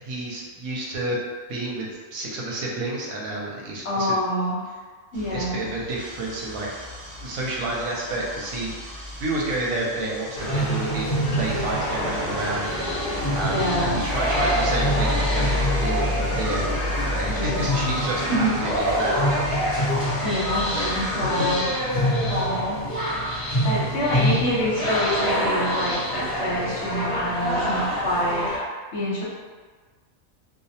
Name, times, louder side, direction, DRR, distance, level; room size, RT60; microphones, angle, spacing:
voice 1, 0.0-1.2 1.5-4.1 5.3-6.7 7.2-12.8 13.0-19.6 21.2-21.5, right 2 dB, 80° right, -3 dB, 1.0 m, -30 dB
voice 2, 3.8-4.6 5.1-5.6 13.5-14.0 17.2-17.6 18.3-18.5 20.2-21.7 22.3-22.8 23.6-28.5 28.9-29.2, equal, 60° left, -7 dB, 0.9 m, -26 dB
sound 1, 5.1-21.6, left 1 dB, 55° right, 0.3 m, -32 dB
sound 2, 10.4-28.6, equal, 30° left, 1.0 m, -25 dB
2.4 x 2.0 x 2.7 m, 1.5 s
omnidirectional pair, 1.4 m